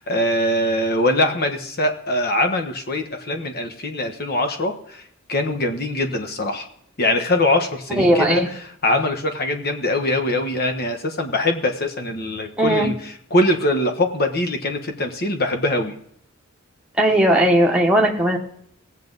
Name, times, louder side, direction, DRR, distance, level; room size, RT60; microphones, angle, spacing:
voice 1, 0.0-5.0 5.3-6.7 7.0-8.4 8.8-16.0, left 1 dB, 45° left, 6 dB, 1.3 m, -22 dB
voice 2, 7.9-8.5 12.6-12.9 17.0-18.4, right 1 dB, 5° right, -1 dB, 1.2 m, -17 dB
18.0 x 7.5 x 4.0 m, 0.68 s
head